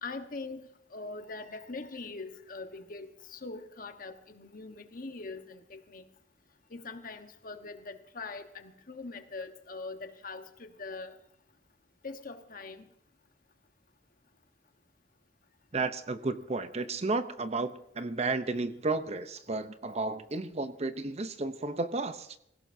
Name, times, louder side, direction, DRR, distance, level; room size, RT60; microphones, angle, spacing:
voice 1, 0.0-6.0 6.7-11.1 12.0-12.8, left 3 dB, 50° left, 6 dB, 1.3 m, -42 dB
voice 2, 15.7-22.4, right 3 dB, 40° right, 10 dB, 0.8 m, -33 dB
25.5 x 16.5 x 2.7 m, 0.77 s
head